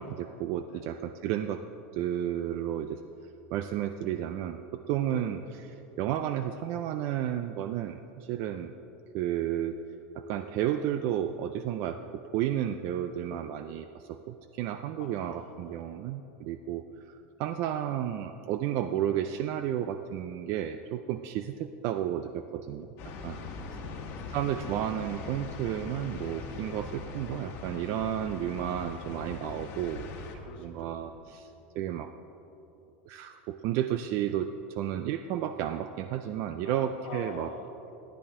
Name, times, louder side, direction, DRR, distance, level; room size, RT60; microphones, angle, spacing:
voice 1, 0.0-1.6 1.9-3.0 3.5-5.4 6.0-8.7 9.1-9.8 10.2-22.9 23.2-23.4 24.3-30.1 30.6-32.1 33.1-37.5, right 11 dB, 50° right, 9 dB, 0.4 m, -32 dB
voice 2, 15.0-15.8 23.4-24.4 30.4-30.9 31.2-31.6 36.6-38.0, left 6 dB, 70° left, 3 dB, 1.3 m, -47 dB
sound 1, 23.0-30.4, left 4 dB, 45° left, 1.3 m, -41 dB
12.5 x 10.5 x 3.7 m, 3.0 s
supercardioid pair, 145°, 6 cm